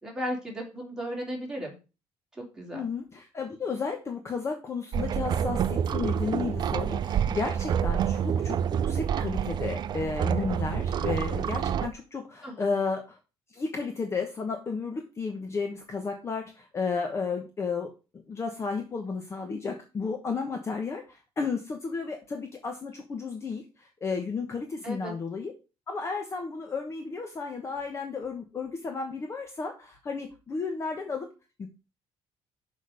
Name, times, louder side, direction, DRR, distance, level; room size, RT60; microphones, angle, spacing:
voice 1, 0.0-1.8 2.4-2.8 12.4-12.7 24.8-25.1, equal, 5° right, -3 dB, 3.3 m, -35 dB
voice 2, 2.7-13.2 13.5-25.5 25.9-31.3 31.6-31.7, left 4 dB, 25° left, 4 dB, 1.1 m, -33 dB
sound 1, 4.9-11.9, right 8 dB, 45° right, 0.5 m, -28 dB
6.4 x 5.3 x 6.6 m, 0.31 s
cardioid pair, 155°, 11 cm